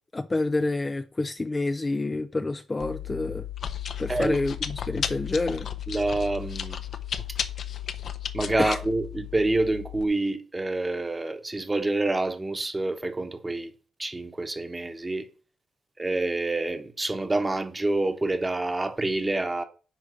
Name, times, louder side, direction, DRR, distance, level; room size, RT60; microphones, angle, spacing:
voice 1, 0.1-3.5 4.0-5.7 8.6-8.8, left 2 dB, 20° left, 0.5 m, -28 dB
Chewing mastication, 2.8-10.0, left 9 dB, 55° left, 0.9 m, -34 dB
voice 2, 5.9-6.8 8.3-13.7 14.0-15.3 16.0-19.6, right 2 dB, 15° right, 1.2 m, -27 dB
10.0 x 3.5 x 6.4 m
cardioid pair, 115°, 0 cm